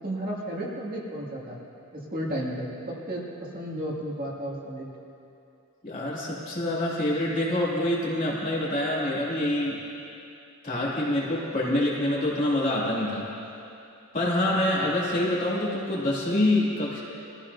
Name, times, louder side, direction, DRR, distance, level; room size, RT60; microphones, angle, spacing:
voice 1, 0.0-1.6 1.9-3.2 3.5-4.8, right 1 dB, 40° right, -5 dB, 2.4 m, -33 dB
voice 2, 5.8-9.8 10.6-13.3 14.1-17.0, left 1 dB, 40° left, -6 dB, 2.7 m, -26 dB
23.0 x 15.0 x 2.8 m, 2.7 s
head